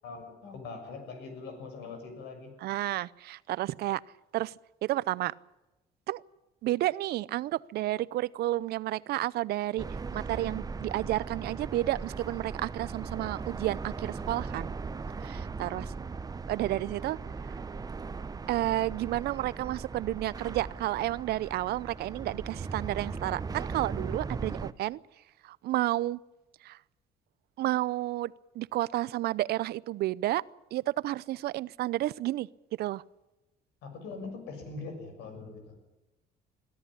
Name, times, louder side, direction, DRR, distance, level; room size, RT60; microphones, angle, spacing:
voice 1, 0.0-2.5 15.6-16.0 33.8-35.7, left 4 dB, 80° left, 6 dB, 6.6 m, -42 dB
voice 2, 2.6-4.0 4.3-4.5 4.8-5.3 6.1-6.2 6.6-9.9 10.1-14.7 15.2-15.9 16.5-17.2 17.4-17.6 18.5-25.0 25.4-26.2 26.6-26.8 27.6-30.4 30.7-32.5 32.8-33.0, right 15 dB, 70° right, 21 dB, 0.6 m, -31 dB
sound 1, 9.8-24.7, right 4 dB, 20° right, 0.8 m, -38 dB
22.0 x 13.5 x 10.0 m, 1.0 s
cardioid pair, 110°, 17 cm